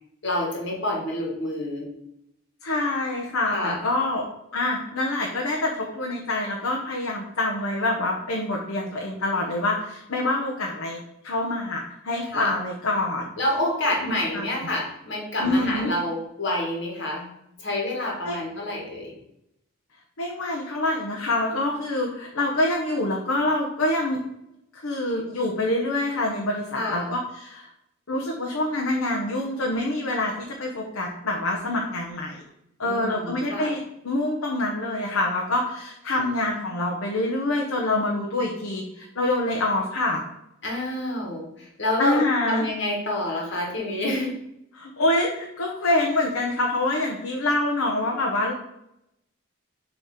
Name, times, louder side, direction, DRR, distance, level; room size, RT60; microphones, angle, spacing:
voice 1, 0.2-1.9 3.5-3.8 12.3-12.5 13.4-17.3 17.6-19.1 26.7-27.1 32.8-33.7 40.6-44.3, left 1 dB, 55° left, -1 dB, 1.8 m, -28 dB
voice 2, 2.6-4.2 4.5-11.0 11.2-13.3 14.0-14.5 15.4-15.9 18.2-18.4 20.2-24.2 24.7-27.7 28.1-30.3 30.6-32.4 32.8-40.2 42.0-42.6 44.7-48.5, left 2 dB, 85° left, -1 dB, 0.9 m, -26 dB
6.5 x 3.2 x 4.9 m, 0.81 s
head